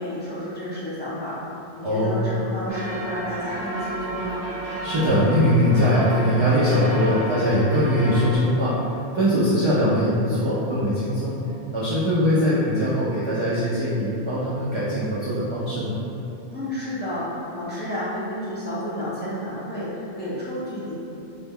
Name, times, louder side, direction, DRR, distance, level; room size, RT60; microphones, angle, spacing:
voice 1, 0.0-1.4 1.7-4.5 16.5-17.3 17.5-20.9, equal, 10° left, -12 dB, 0.5 m, -31 dB
voice 2, 1.8-2.2 4.8-8.8 9.1-11.4 11.7-16.0, equal, 55° right, -10 dB, 0.3 m, -21 dB
sound 1, 2.7-8.4, right 1 dB, 75° right, 0.9 m, -32 dB
2.2 x 2.1 x 3.4 m, 2.8 s
omnidirectional pair, 1.0 m